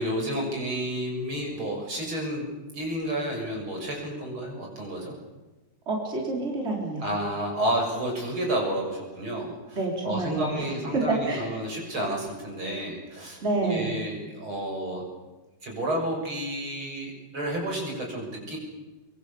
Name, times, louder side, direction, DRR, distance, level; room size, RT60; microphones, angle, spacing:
voice 1, 0.0-2.5 2.7-5.2 7.0-9.8 10.0-15.1 15.6-18.6, right 1 dB, 70° right, 1 dB, 7.5 m, -31 dB
voice 2, 5.9-7.0 9.7-11.5 13.4-13.9, right 3 dB, 30° right, 0 dB, 4.4 m, -28 dB
24.0 x 24.0 x 7.1 m, 1.1 s
omnidirectional pair, 2.4 m